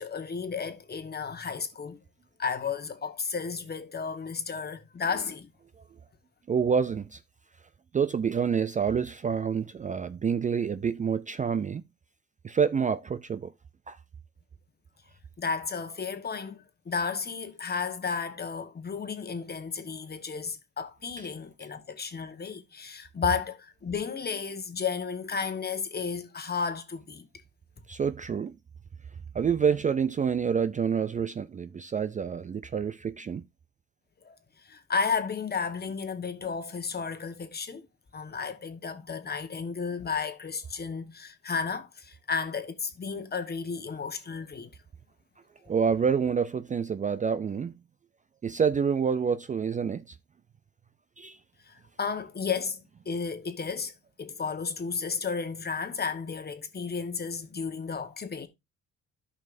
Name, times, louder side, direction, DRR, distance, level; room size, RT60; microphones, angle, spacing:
voice 1, 0.0-2.0 2.4-5.5 15.4-27.3 34.2-34.3 34.6-37.9 38.1-44.7 51.7-52.8 53.0-53.9 54.2-58.5, left 5 dB, 30° left, 1.3 m, -33 dB
voice 2, 6.5-7.2 7.9-11.8 12.4-13.5 13.9-14.0 27.9-28.5 29.3-33.4 45.7-47.7 48.4-50.2 51.2-51.4, right 6 dB, 25° right, 0.4 m, -27 dB
13.0 x 5.4 x 2.6 m
cardioid pair, 90°, 30 cm